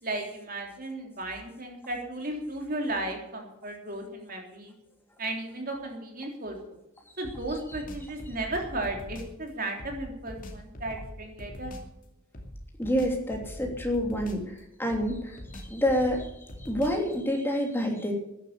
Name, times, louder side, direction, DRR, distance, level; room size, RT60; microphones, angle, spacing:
voice 1, 0.0-4.7 5.2-6.6 7.2-11.7, right 2 dB, 40° right, 2 dB, 3.5 m, -35 dB
sound 1, 7.2-9.4 9.8-11.9 12.3-14.6 14.9-17.1, equal, 35° left, 2.5 m, -42 dB
voice 2, 12.8-14.4 14.8-16.3 16.6-18.1, equal, 10° left, 1 dB, 2.9 m, -28 dB
13.5 x 11.0 x 8.3 m, 0.86 s
head